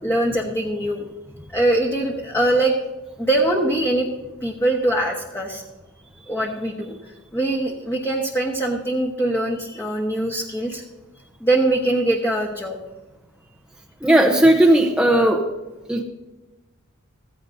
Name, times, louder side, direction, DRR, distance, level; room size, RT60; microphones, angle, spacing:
voice 1, 0.0-1.0 1.5-2.8 3.2-4.1 4.4-5.6 6.3-6.9 7.3-10.8 11.4-12.8, right 1 dB, 10° left, -1 dB, 1.2 m, -22 dB
voice 2, 14.0-15.5 15.9-16.0, right 1 dB, 5° right, 0 dB, 0.8 m, -16 dB
15.5 x 15.0 x 2.7 m, 1.1 s
head